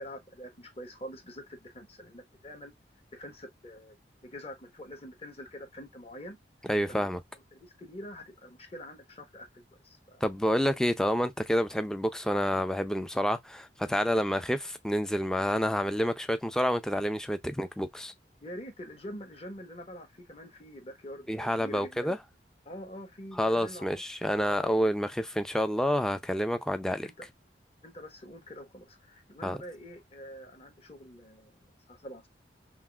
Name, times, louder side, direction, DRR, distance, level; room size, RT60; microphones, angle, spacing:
voice 1, 0.0-2.7 3.1-3.9 4.2-6.4 6.9-7.1 7.5-10.2 18.4-22.1 22.6-24.7 27.0-27.3 27.8-32.3, equal, 30° left, 1.1 m, -45 dB
voice 2, 6.7-7.2 10.2-18.1 21.3-22.2 23.4-27.1 29.4-29.6, equal, 5° left, 0.4 m, -28 dB
5.8 x 2.5 x 2.3 m
head